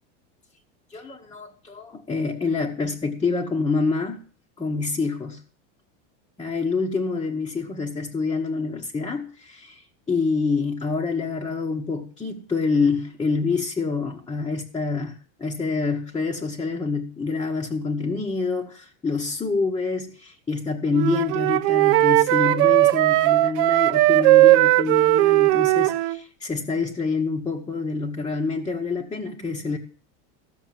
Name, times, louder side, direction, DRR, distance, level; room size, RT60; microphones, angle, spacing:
voice 1, 0.9-4.2 4.6-5.4 6.4-29.8, left 4 dB, 10° left, 1.1 m, -27 dB
Wind instrument woodwind instrument, 20.9-26.2, right 17 dB, 45° right, 0.7 m, -18 dB
15.0 x 6.5 x 7.5 m
supercardioid pair, 155°, 37 cm